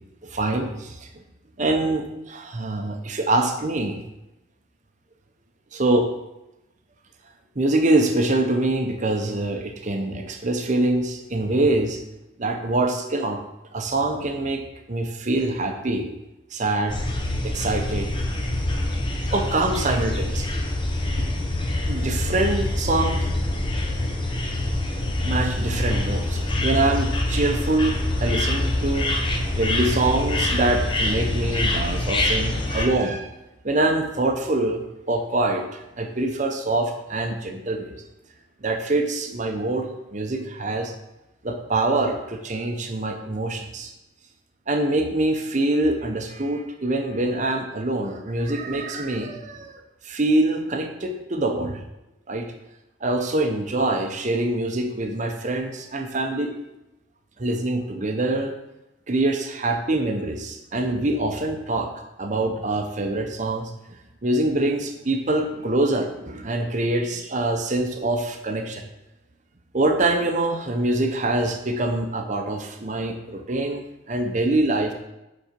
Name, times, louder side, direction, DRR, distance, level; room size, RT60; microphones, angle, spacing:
voice 1, 0.2-1.2 1.6-4.0 5.7-6.1 7.6-12.0 12.4-13.4 13.7-14.6 14.9-16.0 16.5-17.0 17.4-18.1 19.3-20.6 21.2-21.3 21.8-23.3 25.2-29.1 29.6-33.3 33.6-38.0 38.6-39.9 40.1-40.9 41.4-43.9 44.7-51.8 52.3-52.5 53.0-56.5 57.4-58.5 59.1-61.9 62.2-63.7 64.2-68.9 69.7-74.9, right 2 dB, 40° right, 4 dB, 0.8 m, -24 dB
sound 1, 16.9-32.8, left 1 dB, 25° left, 0.8 m, -25 dB
8.3 x 4.2 x 5.2 m, 0.94 s
head